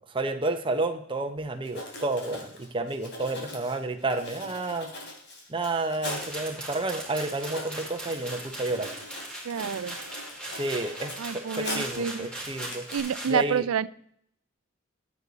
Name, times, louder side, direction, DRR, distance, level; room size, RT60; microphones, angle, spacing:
voice 1, 0.1-4.9 5.5-8.9 10.5-12.8 13.3-13.6, right 2 dB, 25° right, 5 dB, 0.9 m, -30 dB
Writing, 1.4-1.5 1.6-6.4 7.0-7.1 7.3-12.1 12.4-13.0, left 2 dB, 55° left, 3.2 m, -41 dB
sound 1, 6.0-13.3, right 1 dB, 5° left, 4.2 m, -39 dB
voice 2, 9.4-10.0 11.2-12.3 12.9-13.9, right 7 dB, 85° right, 18 dB, 0.4 m, -28 dB
14.5 x 8.4 x 4.1 m, 0.69 s
head